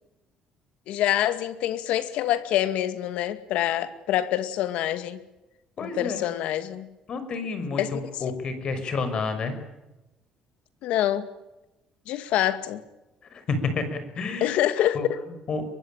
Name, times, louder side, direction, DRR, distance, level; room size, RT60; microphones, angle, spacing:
voice 1, 0.9-5.2 5.8-6.9 7.8-7.9 10.8-11.3 12.1-12.8 14.4-15.2, left 12 dB, 80° left, 12 dB, 2.2 m, -26 dB
voice 2, 5.8-6.3 7.1-9.6 13.3-14.5 14.9-15.1 15.5-15.6, left 4 dB, 45° left, 9 dB, 5.9 m, -30 dB
23.5 x 22.0 x 9.1 m, 0.99 s
cardioid pair, 125°, 2 cm